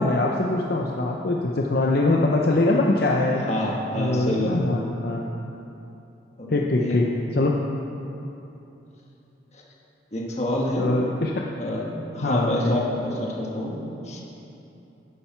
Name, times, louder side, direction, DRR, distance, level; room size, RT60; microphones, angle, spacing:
voice 1, 0.0-3.4 4.0-5.2 6.5-7.1 7.3-7.6 10.8-11.4 12.2-12.7, left 2 dB, 55° left, 0 dB, 0.6 m, -23 dB
voice 2, 3.5-4.7 6.4-6.5 6.8-7.0 9.5-9.6 10.1-11.1 11.6-11.9 12.1-13.8 14.0-14.2, left 1 dB, 35° left, -2 dB, 1.4 m, -27 dB
11.5 x 10.0 x 4.5 m, 2.9 s
head